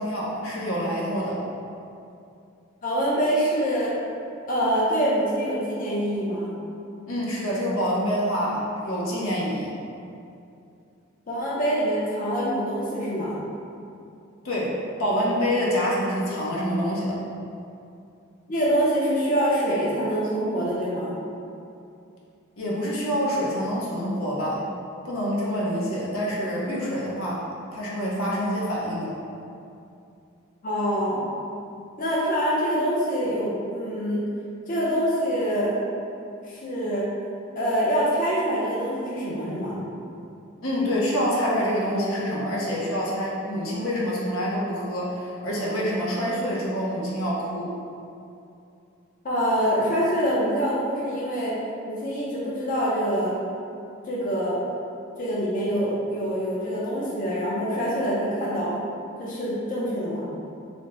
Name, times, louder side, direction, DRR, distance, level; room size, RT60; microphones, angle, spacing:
voice 1, 0.0-1.4 7.1-9.7 14.4-14.7 15.0-17.2 22.6-24.6 25.0-27.5 27.7-29.1 40.6-47.7, equal, 80° left, -5 dB, 0.7 m, -26 dB
voice 2, 2.8-3.9 4.5-6.5 11.3-13.4 18.5-21.1 30.6-31.3 32.0-34.3 34.7-35.7 36.5-37.1 37.5-39.8 49.2-51.6 51.9-53.4 54.1-54.6 55.2-58.8 59.2-60.3, equal, 40° left, -7 dB, 0.5 m, -25 dB
3.3 x 2.0 x 3.8 m, 2.6 s
head